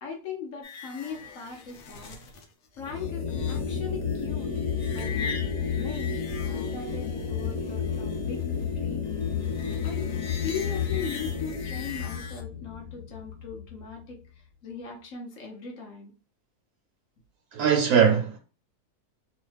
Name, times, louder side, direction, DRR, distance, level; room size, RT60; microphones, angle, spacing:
voice 1, 0.0-2.2 2.8-4.5 4.9-6.2 6.4-8.4 8.8-9.0 9.8-10.1 10.4-14.2 14.6-16.1, left 6 dB, 60° left, 1.0 m, -39 dB
sound 1, 0.6-12.4, left 5 dB, 85° left, 1.2 m, -42 dB
sound 2, 2.8-14.1, left 6 dB, 30° left, 0.6 m, -31 dB
voice 2, 17.5-18.4, right 7 dB, 75° right, 1.0 m, -21 dB
3.1 x 2.2 x 3.2 m
omnidirectional pair, 1.7 m